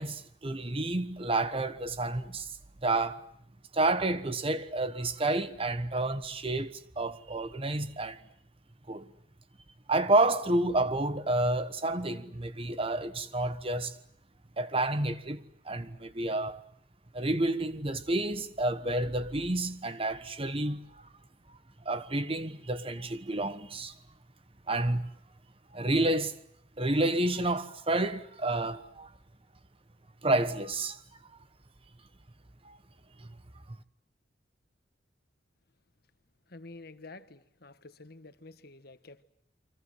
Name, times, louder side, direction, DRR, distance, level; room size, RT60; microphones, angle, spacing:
voice 1, 0.0-2.5 2.8-3.2 3.7-8.2 8.9-9.1 9.9-13.9 14.6-16.6 17.1-21.1 21.8-23.9 24.7-25.1 25.7-26.4 26.8-29.1 30.2-31.0 32.6-32.8, right 2 dB, 30° right, 1.2 m, -30 dB
voice 2, 36.5-39.2, left 2 dB, 55° left, 1.4 m, -49 dB
29.0 x 24.5 x 7.9 m
head